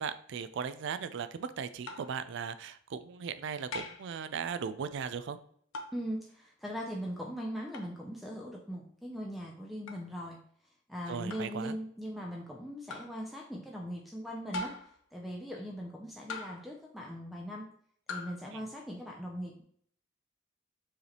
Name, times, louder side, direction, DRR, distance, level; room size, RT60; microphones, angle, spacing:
voice 1, 0.0-5.4 11.1-11.8 18.5-18.6, right 6 dB, 60° right, 12 dB, 0.3 m, -37 dB
sound 1, 1.9-2.2 3.7-4.1 5.7-6.0 7.7-7.9 9.9-10.0 11.3-11.6 12.9-13.2 14.5-15.0 16.3-16.7 18.1-18.4, left 3 dB, 70° left, 0.6 m, -41 dB
voice 2, 5.9-10.4 10.9-17.7 18.1-19.6, equal, ahead, -1 dB, 0.5 m, -40 dB
4.7 x 3.3 x 2.9 m, 0.62 s
head